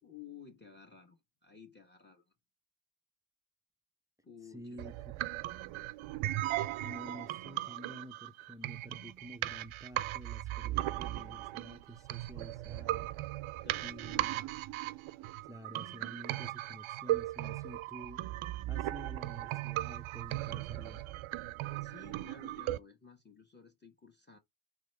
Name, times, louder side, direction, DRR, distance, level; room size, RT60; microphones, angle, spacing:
voice 1, 0.0-2.2 4.2-4.8 13.6-14.0 21.8-24.4, left 6 dB, 20° left, 1.4 m, -54 dB
voice 2, 4.4-4.9 6.7-13.1 13.8-14.5 15.4-18.2 18.7-21.0, equal, 5° right, 0.6 m, -50 dB
sound 1, 4.8-22.8, right 16 dB, 80° right, 0.5 m, -37 dB
4.5 x 3.4 x 3.3 m
supercardioid pair, 55°, 48 cm